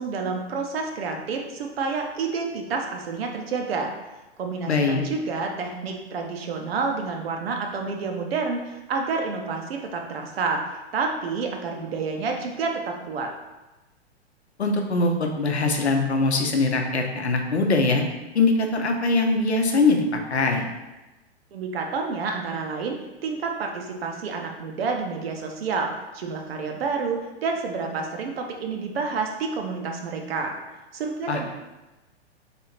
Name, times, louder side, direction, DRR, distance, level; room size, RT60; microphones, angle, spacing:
voice 1, 0.0-3.9 4.4-10.6 10.9-13.3 21.5-23.0 23.2-30.6 30.9-31.4, right 4 dB, 65° right, 2 dB, 0.8 m, -29 dB
voice 2, 4.7-5.0 14.6-18.0 18.3-20.0 20.3-20.6 31.3-31.4, left 3 dB, 90° left, 3 dB, 0.7 m, -22 dB
3.4 x 2.7 x 4.4 m, 1.1 s
hypercardioid pair, 110°, 32 cm